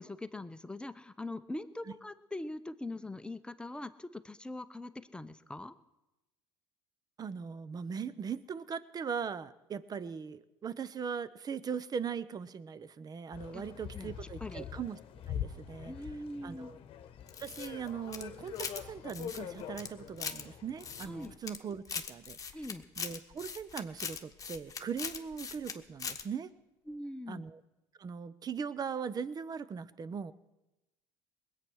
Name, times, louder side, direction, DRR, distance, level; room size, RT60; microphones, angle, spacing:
voice 1, 0.0-5.7 13.5-13.6 13.9-14.1 14.4-14.7 15.9-16.7 21.1-21.3 22.5-22.8 26.9-27.4, left 2 dB, 10° left, 11 dB, 0.8 m, -42 dB
voice 2, 7.2-15.0 15.3-15.9 16.4-16.8 17.4-22.4 23.0-26.5 27.3-27.6 28.0-30.3, right 6 dB, 35° right, 17 dB, 0.8 m, -39 dB
sound 1, 13.3-21.4, left 9 dB, 50° left, 1.2 m, -44 dB
sound 2, 17.3-18.8 19.1-20.4 20.8-21.6 21.9-25.7 26.0-26.2, left 6 dB, 30° left, 1.3 m, -40 dB
20.5 x 8.6 x 6.3 m, 0.98 s
hypercardioid pair, 80°, 12 cm